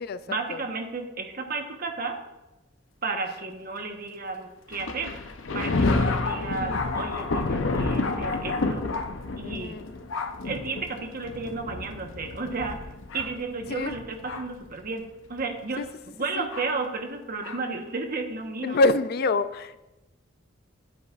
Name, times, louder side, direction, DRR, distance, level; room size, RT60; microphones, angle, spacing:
voice 1, 0.3-2.2 3.0-5.1 5.5-8.8 9.4-9.8 10.4-12.8 13.1-15.0 15.3-18.8, right 3 dB, 50° right, 4 dB, 1.2 m, -33 dB
Thunder, 4.7-14.6 15.4-15.5 16.5-16.7 17.4-17.6, left 3 dB, 75° left, 0.7 m, -29 dB
voice 2, 9.4-9.9 13.7-14.0 15.8-15.9 16.4-16.5 18.6-19.8, left 2 dB, 55° left, 14 dB, 0.4 m, -26 dB
14.5 x 8.3 x 2.5 m, 1.0 s
head